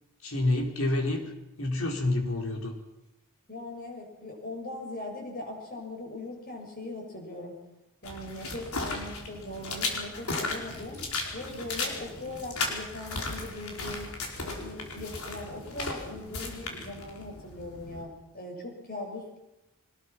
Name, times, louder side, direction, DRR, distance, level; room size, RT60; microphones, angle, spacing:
voice 1, 0.2-1.3 1.6-2.7, left 2 dB, 65° left, 2 dB, 4.4 m, -28 dB
voice 2, 3.5-7.6 8.0-11.0 11.3-14.1 14.4-19.4, left 2 dB, 45° left, 1 dB, 6.9 m, -40 dB
sound 1, 8.0-18.0, left 3 dB, 85° left, 4.9 m, -36 dB
24.5 x 20.0 x 6.1 m, 0.94 s
head